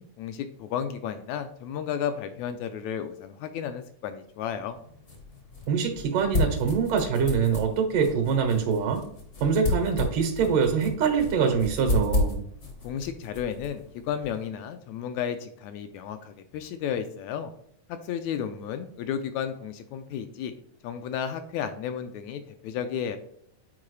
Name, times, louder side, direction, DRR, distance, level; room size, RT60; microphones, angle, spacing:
voice 1, 0.0-4.8 12.8-17.5 18.0-20.5 20.8-23.2, left 8 dB, 80° left, 9 dB, 1.6 m, -33 dB
sound 1, 4.6-14.5, left 2 dB, 60° left, 0.7 m, -33 dB
voice 2, 5.7-9.0 9.4-12.4, right 6 dB, 85° right, 4 dB, 2.7 m, -24 dB
8.5 x 4.5 x 3.2 m, 0.66 s
omnidirectional pair, 3.6 m